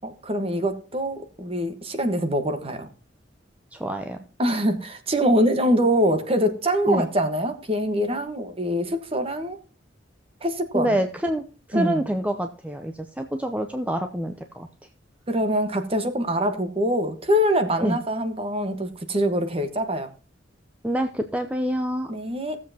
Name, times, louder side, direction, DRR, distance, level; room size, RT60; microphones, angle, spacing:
voice 1, 0.0-2.9 4.4-9.6 10.4-11.0 11.7-12.1 15.3-20.1 22.1-22.6, equal, 30° right, 1.4 m, -24 dB
voice 2, 3.7-4.2 6.9-7.1 10.7-14.7 17.8-18.0 20.8-22.1, right 1 dB, 10° right, 0.6 m, -27 dB
16.5 x 7.4 x 2.9 m
head